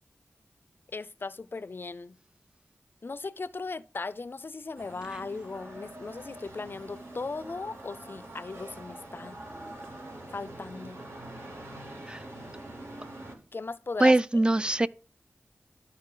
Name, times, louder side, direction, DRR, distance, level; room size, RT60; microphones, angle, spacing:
voice 1, 0.9-2.2 3.0-9.4 10.3-11.0 13.5-14.2, left 3 dB, 50° left, 0.4 m, -38 dB
sound 1, 4.8-13.4, right 1 dB, 75° right, 2.0 m, -44 dB
voice 2, 14.0-14.9, right 2 dB, 20° right, 0.3 m, -22 dB
12.5 x 4.4 x 3.8 m
wide cardioid pair, 60°, 5 cm